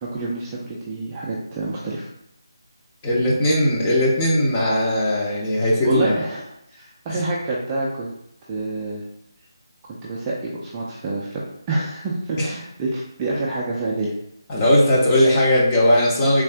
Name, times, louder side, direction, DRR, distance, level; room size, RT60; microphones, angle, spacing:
voice 1, 0.0-2.1 5.8-6.4 6.7-8.1 8.5-9.0 9.9-11.4 11.7-14.1, right 2 dB, 15° right, -6 dB, 0.4 m, -27 dB
voice 2, 3.0-6.1 12.4-12.5 14.5-16.4, left 1 dB, 20° left, -4 dB, 0.7 m, -18 dB
3.6 x 2.4 x 3.3 m, 0.80 s
figure-of-eight pair, 165°, 2 cm